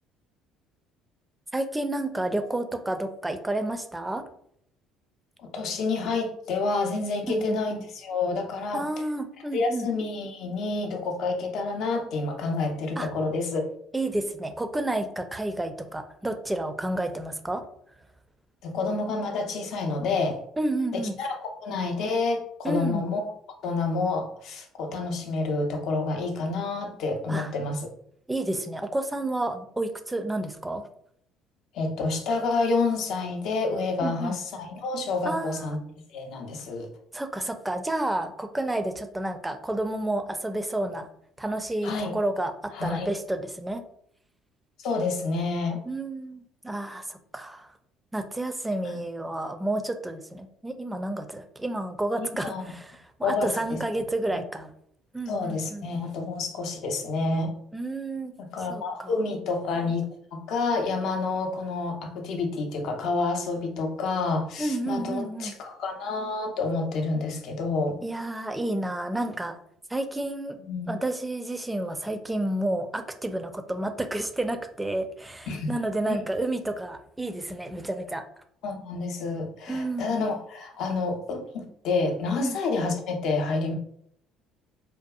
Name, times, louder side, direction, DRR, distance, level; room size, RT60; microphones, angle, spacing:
voice 1, 1.5-4.2 7.3-7.6 8.7-9.9 13.0-13.1 13.9-17.6 20.6-21.2 22.6-23.0 27.3-27.5 28.3-30.8 34.0-34.4 35.2-35.7 37.1-41.1 41.4-43.8 45.8-47.7 48.1-54.7 55.1-55.9 57.7-58.3 58.7-59.1 64.6-65.5 68.0-69.6 69.9-70.6 70.9-78.2 79.7-80.2 82.4-82.6, right 1 dB, 10° right, 7 dB, 0.4 m, -30 dB
voice 2, 5.4-8.9 9.5-13.6 18.6-20.4 20.9-23.3 23.6-27.9 31.7-35.8 36.1-36.9 41.8-42.1 42.7-43.1 44.8-45.8 48.9-49.0 52.2-52.6 53.2-53.8 54.3-54.4 55.3-57.5 58.4-60.1 60.3-68.0 70.6-70.9 75.5-75.7 76.0-76.2 78.6-83.7, left 3 dB, 65° left, 4 dB, 0.5 m, -29 dB
2.6 x 2.3 x 2.3 m, 0.69 s
hypercardioid pair, 65°, 0 cm